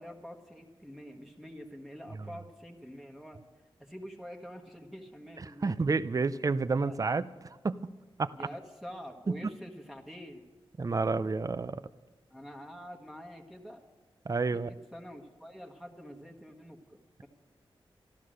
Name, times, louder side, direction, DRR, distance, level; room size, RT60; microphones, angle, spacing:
voice 1, 0.0-3.4 3.8-5.8 6.8-7.0 8.3-10.4 12.3-13.8 14.5-16.8 17.2-17.3, equal, 5° right, 0 dB, 1.4 m, -46 dB
voice 2, 5.4-7.2 7.6-7.8 8.2-8.3 10.8-11.8 14.3-14.7, right 4 dB, 40° right, 14 dB, 0.5 m, -29 dB
13.5 x 12.5 x 6.4 m, 1.3 s
wide cardioid pair, 70°, 9 cm